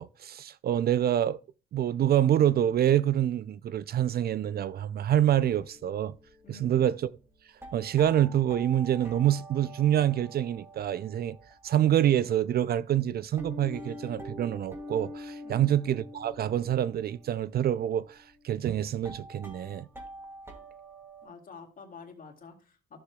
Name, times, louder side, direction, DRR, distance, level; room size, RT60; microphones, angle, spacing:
voice 1, 0.0-1.4 1.7-6.2 6.5-7.1 7.7-11.4 11.6-19.9, right 11 dB, 50° right, 0.4 m, -26 dB
sound 1, 5.3-11.8 12.5-12.6 13.1-21.3, equal, 10° right, 2.4 m, -46 dB
voice 2, 6.4-6.8 15.4-15.7 21.2-23.0, left 4 dB, 45° left, 2.1 m, -48 dB
13.0 x 6.6 x 2.3 m
cardioid pair, 90°, 20 cm